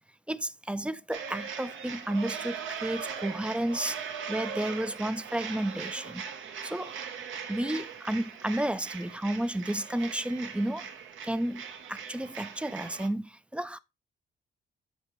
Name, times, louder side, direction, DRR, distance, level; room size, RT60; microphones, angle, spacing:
voice 1, 0.3-4.0 4.3-6.3 6.6-6.9 7.5-10.9 11.2-11.6 11.9-13.8, right 1 dB, 5° right, 0.3 m, -32 dB
sound 1, 1.1-13.1, right 7 dB, 80° right, 0.9 m, -40 dB
7.2 x 5.1 x 3.0 m
cardioid pair, 90°, 20 cm